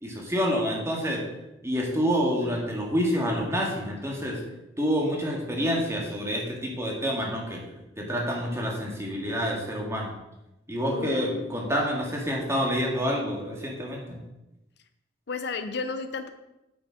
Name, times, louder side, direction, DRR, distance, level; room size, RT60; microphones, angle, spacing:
voice 1, 0.0-1.2 1.6-4.4 4.8-7.6 8.0-10.2 10.7-14.2, equal, 15° right, -1 dB, 1.9 m, -28 dB
voice 2, 10.9-11.6 15.3-16.3, left 4 dB, 65° left, 9 dB, 0.6 m, -33 dB
8.7 x 6.1 x 4.9 m, 0.93 s
head